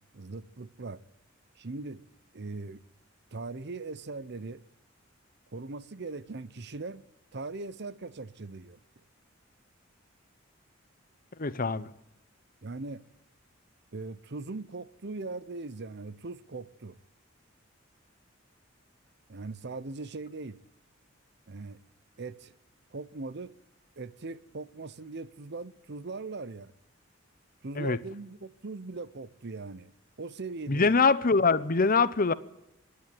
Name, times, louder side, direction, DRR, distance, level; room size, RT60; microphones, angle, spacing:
voice 1, 0.1-1.0 1.6-2.0 2.3-2.8 3.3-4.6 5.5-7.0 7.3-8.8 12.6-13.0 13.9-17.0 19.3-20.6 21.5-21.8 22.2-22.5 22.9-23.5 24.0-26.7 27.6-29.9 30.2-31.0, right 3 dB, 55° right, 0.8 m, -40 dB
voice 2, 11.4-11.9 27.8-28.0 30.7-32.3, left 4 dB, 45° left, 0.8 m, -23 dB
25.5 x 11.5 x 9.3 m
head